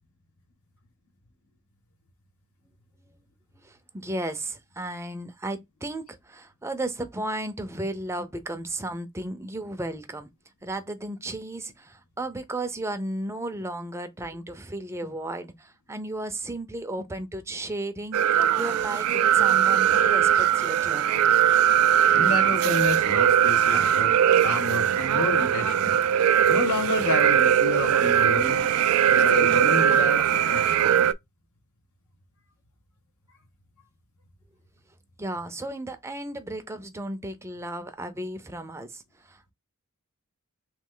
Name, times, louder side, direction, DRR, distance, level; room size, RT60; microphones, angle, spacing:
voice 1, 3.5-10.3 10.6-21.2 35.2-39.5, right 1 dB, 15° right, 0.5 m, -34 dB
sound 1, 18.1-31.1, right 9 dB, 75° right, 0.3 m, -20 dB
voice 2, 22.1-24.1 24.4-28.6 29.1-30.9, left 2 dB, 85° left, 1.1 m, -30 dB
3.2 x 3.1 x 3.7 m
head